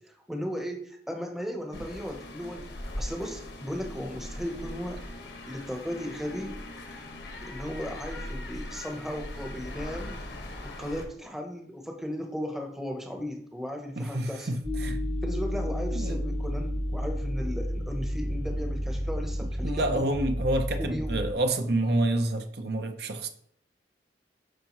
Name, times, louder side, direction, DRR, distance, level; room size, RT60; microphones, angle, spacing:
voice 1, 0.3-2.7 3.0-5.0 5.5-6.6 7.4-10.2 10.6-14.5 15.2-20.1 20.8-21.2, equal, ahead, 0.8 m, -36 dB
sound 1, 1.7-11.0, left 1 dB, 80° left, 1.4 m, -40 dB
voice 2, 14.0-15.0 15.9-16.2 19.6-23.3, right 1 dB, 65° right, 0.8 m, -28 dB
sound 2, 14.6-21.3, equal, 40° right, 1.4 m, -31 dB
11.5 x 4.7 x 3.0 m
head